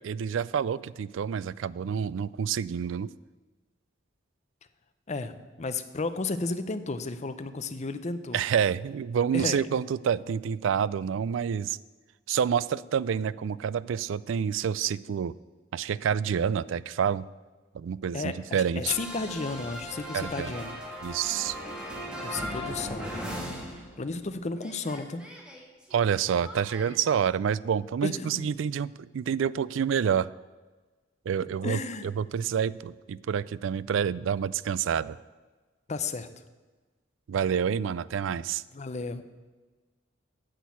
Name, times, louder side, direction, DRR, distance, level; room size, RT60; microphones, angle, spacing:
voice 1, 0.0-3.1 8.3-11.8 12.3-15.3 15.7-17.3 17.7-19.0 20.1-20.5 21.0-21.6 25.9-30.3 31.3-31.8 32.2-35.2 37.3-38.6, right 7 dB, 70° right, 19 dB, 0.3 m, -28 dB
voice 2, 5.1-8.4 9.3-9.6 18.1-20.8 22.2-23.1 24.0-25.2 28.0-28.5 31.6-32.1 35.9-36.3 38.7-39.2, left 3 dB, 35° left, 11 dB, 0.6 m, -33 dB
sound 1, 18.8-24.3 24.6-26.9, equal, 5° right, 1.9 m, -38 dB
10.0 x 6.4 x 8.3 m, 1.3 s
head